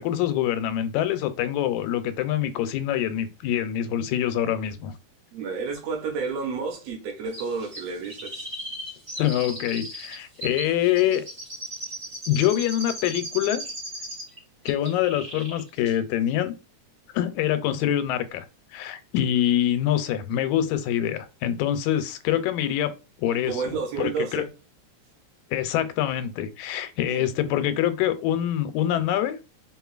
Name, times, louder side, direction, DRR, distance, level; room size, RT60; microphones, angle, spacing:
voice 1, 0.0-4.9 9.2-11.2 12.3-13.6 14.7-16.5 17.1-18.5 18.7-22.9 23.2-23.6 24.0-24.4 25.5-29.4, left 11 dB, 90° left, 2.0 m, -25 dB
voice 2, 5.3-8.5 23.4-24.5 27.1-27.2, right 5 dB, 70° right, 1.7 m, -30 dB
Chirp tweet, 7.3-14.4 14.7-15.6 15.9-16.0, right 1 dB, 25° right, 1.8 m, -37 dB
4.3 x 3.7 x 2.3 m
omnidirectional pair, 3.3 m